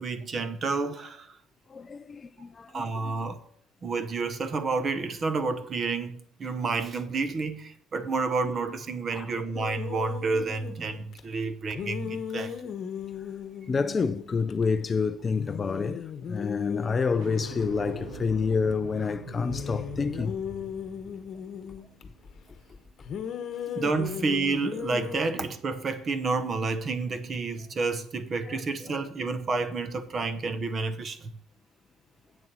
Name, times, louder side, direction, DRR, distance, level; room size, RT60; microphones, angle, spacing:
voice 1, 0.0-1.3 2.7-3.4 3.8-12.6 23.7-31.3, right 4 dB, 30° right, 0.9 m, -30 dB
voice 2, 1.7-2.8 9.1-9.3 13.7-20.3 28.5-28.6, left 5 dB, 25° left, 0.4 m, -28 dB
sound 1, 9.5-11.2 11.7-14.6 14.9-15.0 15.3-18.7 19.3-22.0 23.0-25.3, left 8 dB, 45° left, 1.1 m, -37 dB
sound 2, 17.2-22.3, right 3 dB, 80° right, 2.6 m, -43 dB
8.5 x 6.9 x 6.1 m
cardioid pair, 145°, 0 cm